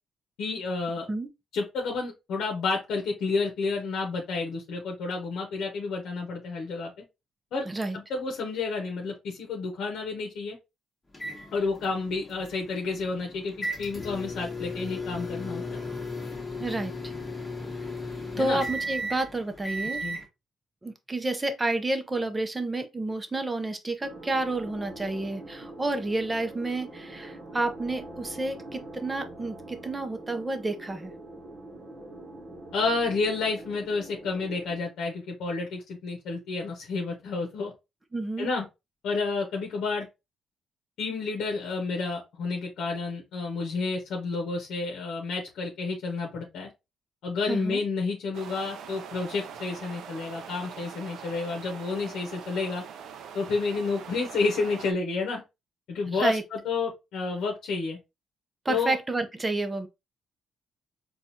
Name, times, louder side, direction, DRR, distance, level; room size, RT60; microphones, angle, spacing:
voice 1, 0.4-1.1 1.5-6.9 7.5-7.7 7.9-10.6 11.5-15.8 18.4-18.6 20.0-20.2 32.7-37.7 38.4-38.6 39.0-40.1 41.0-46.7 47.2-52.8 53.3-55.4 55.9-58.0 58.7-59.0, left 4 dB, 75° left, 0.8 m, -30 dB
voice 2, 7.7-8.0 16.6-17.1 18.4-20.0 20.8-31.1 38.1-38.5 47.5-47.8 56.1-56.4 58.6-59.9, right 2 dB, 20° right, 0.6 m, -30 dB
sound 1, 11.1-20.2, left 1 dB, 15° left, 1.2 m, -36 dB
sound 2, 24.0-34.8, right 1 dB, 50° right, 0.9 m, -44 dB
sound 3, 48.3-54.9, right 7 dB, 75° right, 0.4 m, -43 dB
4.0 x 2.3 x 2.8 m
cardioid pair, 90°, 0 cm